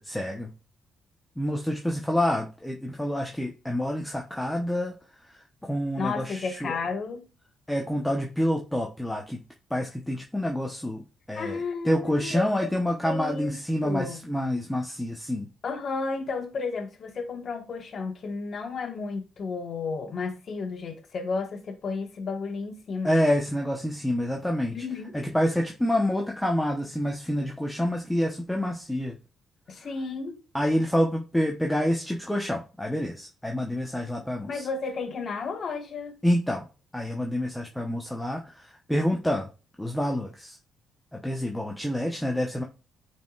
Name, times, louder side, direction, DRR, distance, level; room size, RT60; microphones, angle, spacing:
voice 1, 0.1-0.5 1.4-5.0 5.3-6.8 7.7-9.4 9.7-11.0 11.3-11.6 11.8-15.5 23.0-24.8 25.1-29.1 30.5-34.7 36.2-36.7 36.9-39.5 39.8-40.6 41.1-42.6, equal, 5° left, 0.9 m, -27 dB
voice 2, 6.0-7.3 11.3-12.7 13.0-14.2 15.6-23.2 24.7-25.2 29.7-30.4 34.5-36.2, left 4 dB, 50° left, 1.4 m, -32 dB
9.1 x 4.5 x 2.4 m
cardioid pair, 90°, 0 cm